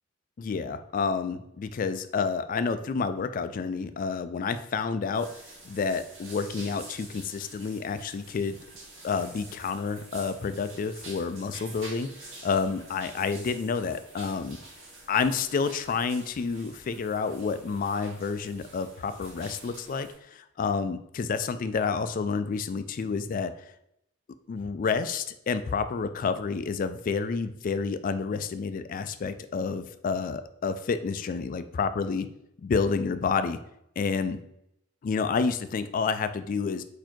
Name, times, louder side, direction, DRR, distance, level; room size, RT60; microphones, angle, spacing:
voice 1, 0.4-5.3 5.6-8.6 9.0-12.1 12.4-14.6 15.1-23.5 24.5-32.3 32.6-33.6 34.0-34.4 35.0-36.8, left 5 dB, 40° left, 11 dB, 0.3 m, -29 dB
sound 1, 5.1-20.1, right 2 dB, 75° right, 1.5 m, -48 dB
4.2 x 2.7 x 4.4 m, 0.79 s
head